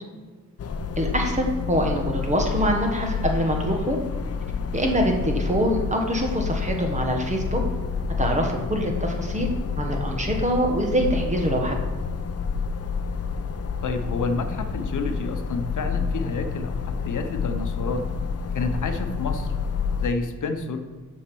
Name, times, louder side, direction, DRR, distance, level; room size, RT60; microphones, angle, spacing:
sound 1, 0.6-20.1, left 5 dB, 45° left, 0.6 m, -29 dB
voice 1, 1.0-4.0 4.7-7.6 8.2-9.5 9.8-11.8, equal, 20° right, 2 dB, 1.3 m, -24 dB
voice 2, 13.8-18.0 18.5-19.5 20.0-20.9, left 3 dB, 60° left, 7 dB, 1.0 m, -29 dB
7.3 x 6.6 x 6.2 m, 1.4 s
wide cardioid pair, 140°, 34 cm